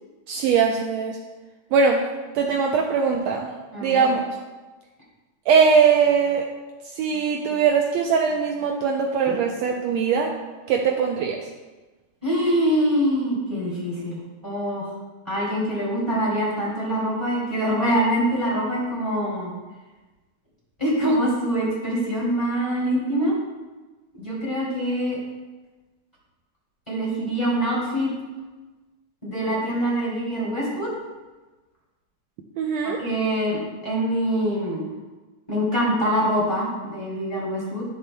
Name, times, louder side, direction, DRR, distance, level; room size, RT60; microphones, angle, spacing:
voice 1, 0.3-1.2 1.7-2.1 2.3-3.5 3.8-4.2 5.5-6.5 6.9-10.3 10.7-11.4 32.6-33.0, right 6 dB, 90° right, 1 dB, 1.5 m, -21 dB
voice 2, 3.7-4.0 12.2-14.8 15.3-19.5 20.8-23.3 24.1-25.2 26.9-28.1 29.2-30.9 32.8-34.9 35.5-37.9, equal, 10° left, -7 dB, 2.2 m, -24 dB
12.5 x 6.8 x 2.2 m, 1.2 s
omnidirectional pair, 3.7 m